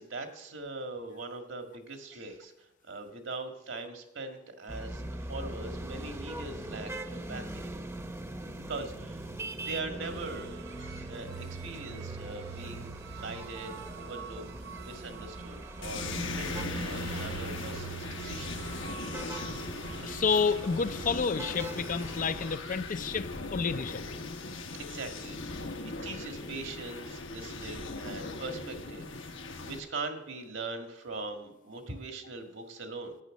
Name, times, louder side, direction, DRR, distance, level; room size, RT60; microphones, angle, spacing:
voice 1, 0.0-7.7 8.5-9.3 9.7-14.5 14.8-18.6 24.8-29.3 29.7-33.2, right 3 dB, 75° right, 1.9 m, -41 dB
sound 1, 4.7-22.6, right 1 dB, 15° right, 0.8 m, -42 dB
sound 2, 10.0-21.2, right 5 dB, 55° right, 0.4 m, -44 dB
sound 3, 15.8-29.8, left 3 dB, 75° left, 1.2 m, -39 dB
voice 2, 20.0-24.0, left 5 dB, 45° left, 0.4 m, -30 dB
11.0 x 9.4 x 6.4 m
head